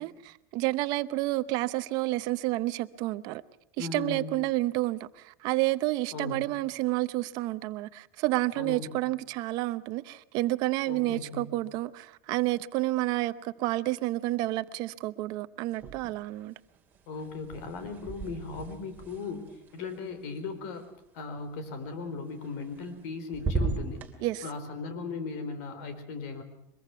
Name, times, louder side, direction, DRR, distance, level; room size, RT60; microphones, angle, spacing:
voice 1, 0.0-3.4 3.8-16.5 24.2-24.4, right 18 dB, 50° right, 0.7 m, -30 dB
voice 2, 3.8-4.3 6.1-6.4 8.6-9.0 10.9-11.5 17.1-20.8 21.1-24.0 24.4-26.4, left 4 dB, 65° left, 4.0 m, -37 dB
sound 1, 15.7-16.4 16.7-20.8 22.4-23.1 23.3-24.1, right 4 dB, 20° right, 2.8 m, -36 dB
23.5 x 22.0 x 5.9 m
cardioid pair, 160°, 9 cm